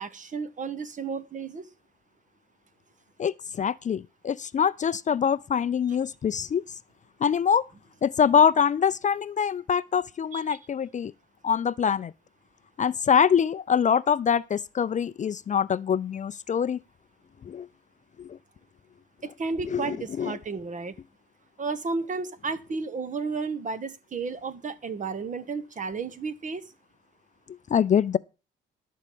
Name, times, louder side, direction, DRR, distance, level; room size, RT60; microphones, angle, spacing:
voice 1, 0.0-1.7 10.3-10.6 19.2-20.9 21.6-26.7, right 4 dB, 40° right, 1.1 m, -33 dB
voice 2, 3.2-6.6 7.2-7.6 8.0-11.1 11.4-12.1 12.8-16.8 17.4-17.7 18.2-18.4 19.7-20.4 27.7-28.2, left 7 dB, 40° left, 0.5 m, -24 dB
12.0 x 4.7 x 8.5 m
cardioid pair, 90°, 20 cm